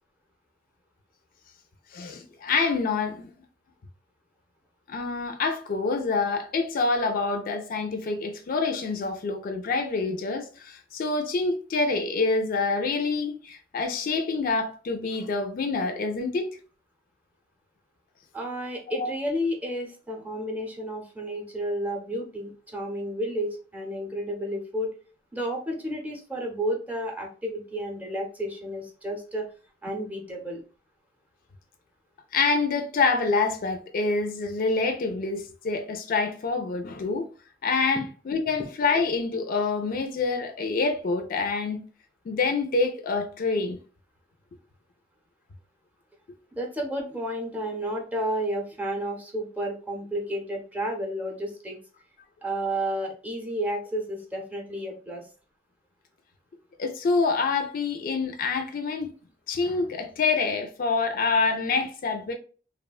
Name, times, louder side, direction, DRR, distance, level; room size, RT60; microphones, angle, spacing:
voice 1, 1.9-3.3 4.9-16.5 19.0-19.1 32.3-37.3 37.6-41.8 42.3-43.8 56.8-59.1 59.5-62.3, left 4 dB, 50° left, 0.4 m, -26 dB
voice 2, 18.3-24.9 25.3-29.5 29.8-30.6 46.5-51.8 52.4-55.3, equal, 10° right, 0.6 m, -31 dB
2.8 x 2.1 x 2.3 m
head